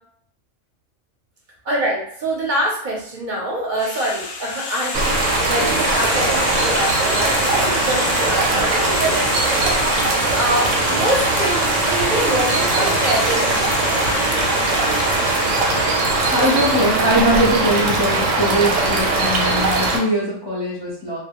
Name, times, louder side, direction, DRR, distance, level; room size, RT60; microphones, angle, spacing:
voice 1, 1.6-9.7 10.0-13.6, right 1 dB, 50° right, -3 dB, 0.7 m, -25 dB
sound 1, 3.8-16.8, left 3 dB, 65° left, 0.7 m, -28 dB
sound 2, 4.9-20.0, right 2 dB, 90° right, 1.0 m, -20 dB
voice 2, 16.3-21.2, equal, 25° left, -7 dB, 0.5 m, -21 dB
2.2 x 2.0 x 2.9 m, 0.68 s
omnidirectional pair, 1.3 m